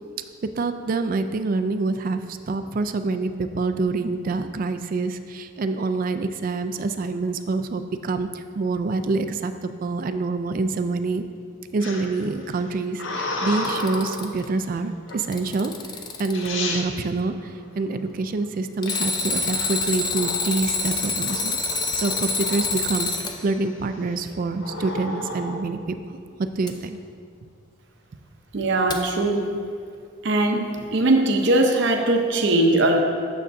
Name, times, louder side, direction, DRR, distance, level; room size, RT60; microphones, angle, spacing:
voice 1, 0.6-11.3 11.7-15.7 16.2-21.6 22.0-23.1 23.4-26.0 26.4-27.0, right 3 dB, 40° right, 9 dB, 0.3 m, -26 dB
sound 1, 11.8-14.3 15.1-15.5 16.1-16.2 16.3-16.9 18.9-20.5 21.0-21.4 21.7-22.9 23.4-23.8 24.6-25.6, left 2 dB, 65° left, 0.8 m, -32 dB
Alarm, 13.5-14.5 15.1-16.5 18.8-23.4 26.7-26.8 28.9-29.0, left 3 dB, 20° left, 0.5 m, -26 dB
voice 2, 28.5-29.4 30.2-33.0, right 2 dB, 55° right, 3 dB, 0.7 m, -20 dB
9.1 x 7.3 x 2.6 m, 2.2 s
head